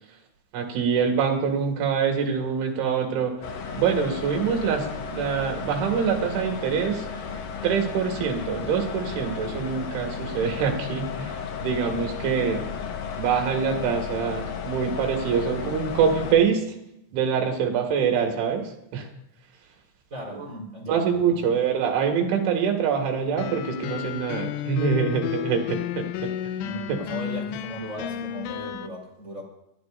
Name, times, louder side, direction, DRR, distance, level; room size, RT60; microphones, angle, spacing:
voice 1, 0.5-3.3 3.8-7.1 7.6-12.6 13.2-16.8 17.1-19.1 20.3-20.5 20.9-26.3, right 6 dB, 75° right, 2 dB, 4.4 m, -25 dB
sound 1, 3.4-16.4, left 6 dB, 70° left, 2.3 m, -34 dB
voice 2, 20.1-21.4 26.6-29.4, equal, 20° right, -2 dB, 3.8 m, -37 dB
sound 2, 23.4-28.9, left 11 dB, 90° left, 3.1 m, -32 dB
22.0 x 14.0 x 2.6 m, 0.82 s
omnidirectional pair, 5.5 m